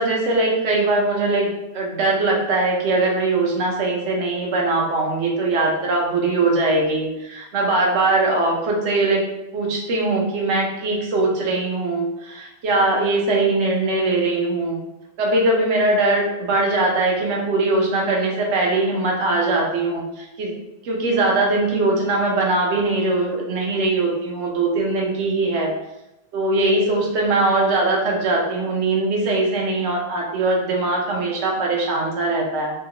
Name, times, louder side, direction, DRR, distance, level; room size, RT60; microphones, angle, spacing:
voice 1, 0.0-9.2 9.5-14.8 15.2-20.5 20.8-25.7 26.3-32.7, right 2 dB, 60° right, -1 dB, 0.8 m, -21 dB
2.8 x 2.2 x 3.7 m, 0.93 s
omnidirectional pair, 1.9 m